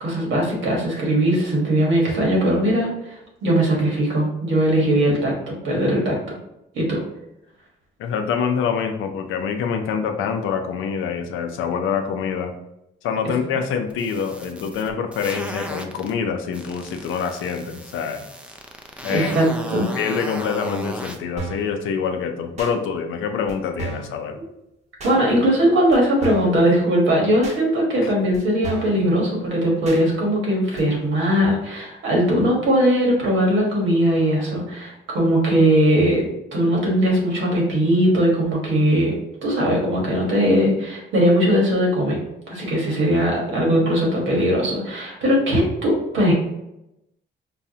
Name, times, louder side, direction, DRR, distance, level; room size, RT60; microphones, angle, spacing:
voice 1, 0.0-6.4 6.7-7.0 19.1-19.9 25.0-39.2 39.4-42.2 42.5-46.3, equal, 75° right, -2 dB, 1.4 m, -20 dB
voice 2, 8.0-12.5 13.0-18.2 19.0-19.3 20.0-24.4 28.0-28.1, left 6 dB, 85° left, 5 dB, 0.5 m, -25 dB
sound 1, 13.9-16.1 16.5-21.2, right 1 dB, 5° right, 0.4 m, -35 dB
sound 2, 21.4-21.7 22.6-22.7 23.5-23.6 23.8-24.1 25.0-25.2 25.9-26.0 26.2-26.6 27.4-27.6 28.3-28.4 28.6-29.0 29.8-30.0 30.8-30.9, right 3 dB, 35° right, 0.9 m, -32 dB
4.6 x 2.0 x 2.7 m, 0.87 s
cardioid pair, 90°, 20 cm